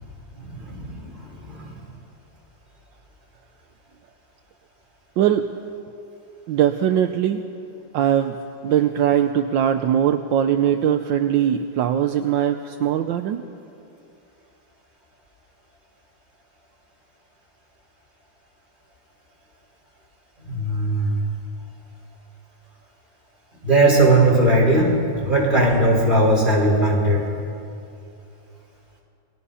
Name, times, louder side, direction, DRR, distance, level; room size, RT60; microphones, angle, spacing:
voice 1, 0.3-1.8 20.5-21.2 23.6-24.9 25.2-27.3, right 1 dB, 25° right, -3 dB, 4.9 m, -19 dB
voice 2, 5.2-5.5 6.5-7.4 7.9-8.4 8.6-13.4, right 10 dB, 75° right, 7 dB, 1.4 m, -20 dB
28.5 x 20.0 x 5.6 m, 2.7 s
omnidirectional pair, 2.1 m